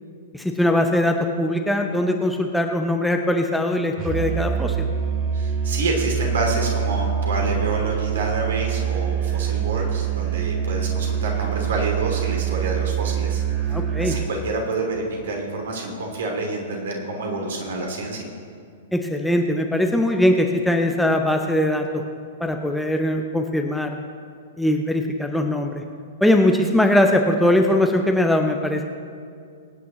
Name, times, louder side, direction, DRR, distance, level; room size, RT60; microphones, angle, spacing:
voice 1, 0.3-4.9 13.7-14.2 18.9-22.0 22.4-24.0 24.6-25.8 26.2-28.8, left 1 dB, ahead, 3 dB, 0.7 m, -21 dB
Musical instrument, 4.0-14.4, right 8 dB, 35° right, 1.4 m, -25 dB
voice 2, 5.3-18.3, right 2 dB, 60° right, 1 dB, 2.8 m, -28 dB
23.5 x 9.3 x 3.1 m, 2.3 s
figure-of-eight pair, 105°, 0 cm